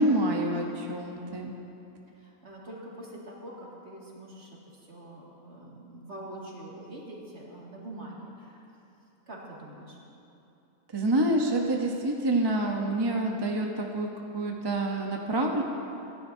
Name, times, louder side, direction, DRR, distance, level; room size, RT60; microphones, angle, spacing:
voice 1, 0.0-1.5 10.9-14.1 14.3-15.6, right 1 dB, 25° right, 1 dB, 0.6 m, -27 dB
voice 2, 2.2-8.6 9.3-10.0, right 1 dB, 45° right, -4 dB, 2.4 m, -44 dB
25.0 x 11.0 x 2.7 m, 2.9 s
omnidirectional pair, 1.6 m